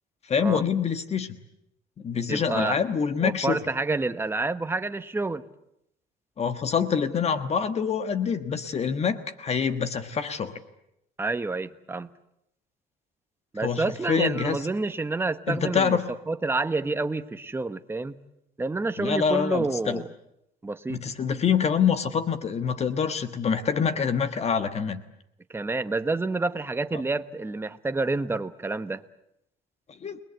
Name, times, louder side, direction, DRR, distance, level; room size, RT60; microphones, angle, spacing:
voice 1, 0.3-1.4 2.0-3.6 6.4-10.6 13.6-14.6 15.5-16.1 19.0-20.0 20.9-25.0 26.9-27.0 30.0-30.2, left 6 dB, 40° left, 10 dB, 1.4 m, -26 dB
voice 2, 2.3-2.8 3.2-5.4 11.2-12.1 13.5-16.0 16.3-18.2 18.6-20.1 20.6-21.0 25.5-29.0, right 3 dB, 15° right, 11 dB, 1.1 m, -28 dB
29.5 x 20.0 x 8.1 m, 0.80 s
cardioid pair, 110°, 17 cm